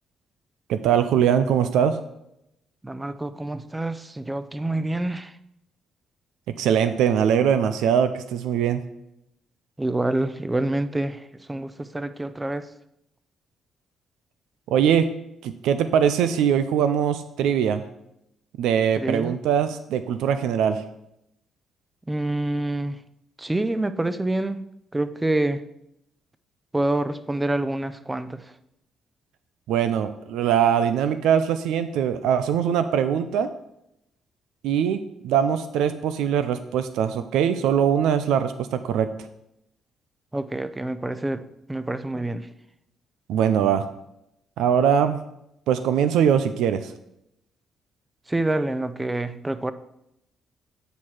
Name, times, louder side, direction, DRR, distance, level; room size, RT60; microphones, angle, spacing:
voice 1, 0.7-2.0 6.6-8.8 14.7-15.1 15.4-17.8 18.6-20.8 29.7-33.5 34.6-39.1 43.3-43.8 44.6-45.2 45.7-46.9, right 8 dB, 90° right, 0.5 m, -22 dB
voice 2, 2.8-5.3 9.8-12.7 19.0-19.4 22.1-23.0 23.4-24.6 24.9-25.6 26.7-28.5 40.3-41.4 41.7-42.5 48.3-49.7, right 2 dB, 15° right, 0.6 m, -27 dB
9.2 x 4.4 x 4.8 m
cardioid pair, 90°, 0 cm